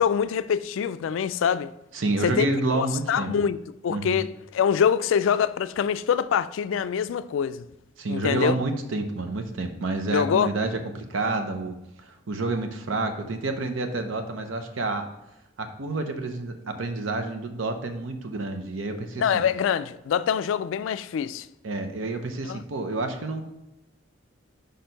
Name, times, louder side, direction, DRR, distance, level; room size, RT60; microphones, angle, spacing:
voice 1, 0.0-1.7 2.2-2.5 2.7-7.6 8.1-8.6 10.1-10.5 19.2-21.5 22.5-22.6, left 8 dB, 80° left, 0.3 m, -24 dB
voice 2, 1.9-3.3 3.9-4.2 8.0-15.1 15.6-19.4 21.6-23.4, right 2 dB, 80° right, 0.7 m, -29 dB
5.2 x 4.4 x 5.2 m
head